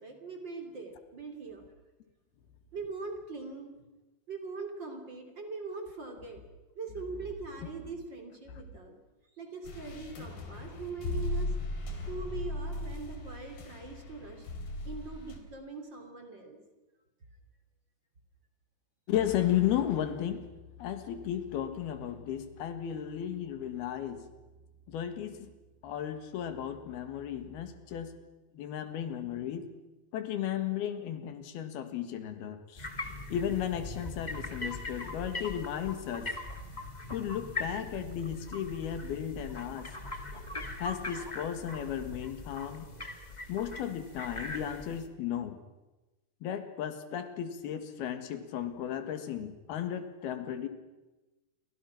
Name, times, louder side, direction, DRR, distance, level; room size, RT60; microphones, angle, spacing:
voice 1, 0.0-1.6 2.7-3.7 4.3-6.4 6.8-9.0 9.4-11.5 12.1-14.5 14.8-16.6, right 4 dB, 30° right, 4 dB, 3.5 m, -42 dB
sound 1, 9.6-15.4, left 2 dB, 70° left, 4.9 m, -37 dB
voice 2, 19.1-20.5 20.8-24.3 24.9-25.5 25.8-28.2 28.5-29.7 30.1-32.9 33.3-36.3 37.1-39.9 40.8-42.9 43.5-45.6 46.4-50.7, left 10 dB, 90° left, 8 dB, 3.7 m, -34 dB
sound 2, 32.7-45.1, left 2 dB, 30° left, 0.8 m, -41 dB
29.5 x 24.0 x 6.0 m, 1.1 s
omnidirectional pair, 4.3 m